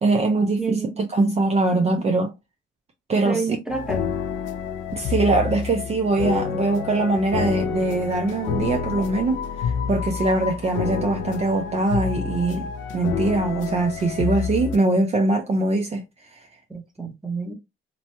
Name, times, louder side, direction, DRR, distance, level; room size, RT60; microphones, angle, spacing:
voice 1, 0.0-2.3 3.1-3.6 4.9-12.7 12.9-16.0 16.3-16.5, right 2 dB, 30° right, 0.5 m, -22 dB
voice 2, 0.6-1.0 1.7-2.0 3.2-4.1 16.7-17.5, right 4 dB, 5° right, 0.8 m, -29 dB
sound 1, 3.7-14.8, left 6 dB, 80° left, 0.4 m, -28 dB
2.9 x 2.2 x 2.7 m
cardioid pair, 90°, 20 cm